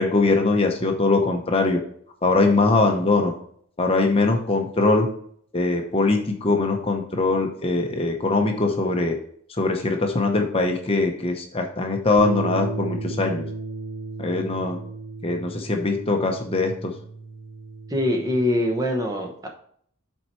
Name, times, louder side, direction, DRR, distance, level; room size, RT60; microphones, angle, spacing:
voice 1, 0.0-1.8 2.2-3.3 3.8-5.1 5.5-9.1 9.5-13.4 14.2-14.8 15.2-16.9, left 3 dB, 25° left, 3 dB, 0.8 m, -22 dB
Bass guitar, 12.2-18.4, right 3 dB, 75° right, 0.7 m, -34 dB
voice 2, 17.9-19.5, left 1 dB, 15° right, 2 dB, 0.9 m, -23 dB
7.1 x 4.5 x 4.5 m, 0.62 s
head